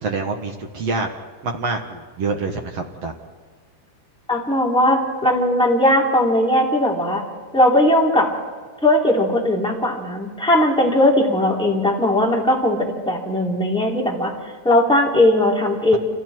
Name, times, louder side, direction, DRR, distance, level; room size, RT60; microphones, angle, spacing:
voice 1, 0.0-1.1 1.4-3.1, right 3 dB, 55° right, 2 dB, 1.8 m, -26 dB
voice 2, 4.3-7.2 7.5-8.3 8.8-14.3 14.6-16.0, left 1 dB, ahead, -3 dB, 3.3 m, -18 dB
29.0 x 28.5 x 4.6 m, 1.5 s
omnidirectional pair, 4.8 m